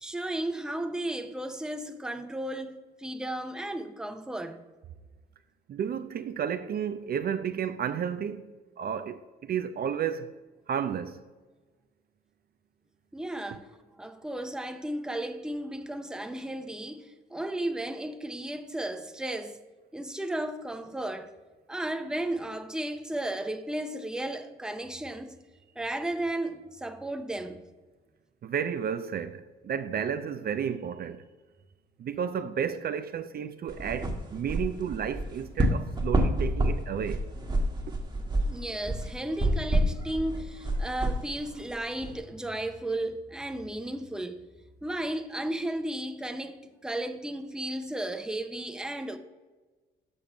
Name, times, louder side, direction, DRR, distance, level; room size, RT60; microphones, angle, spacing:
voice 1, 0.0-4.6 13.1-13.7 14.0-19.6 19.9-21.3 21.7-25.4 25.8-27.6 38.5-44.4 44.8-49.2, right 1 dB, 5° right, 0.7 m, -34 dB
voice 2, 5.7-8.5 8.8-10.3 10.7-11.2 28.4-31.2 32.0-37.2, right 8 dB, 50° right, 0.5 m, -32 dB
sound 1, 33.7-42.2, right 1 dB, 20° right, 1.3 m, -29 dB
6.8 x 5.3 x 5.9 m
cardioid pair, 90°, 20 cm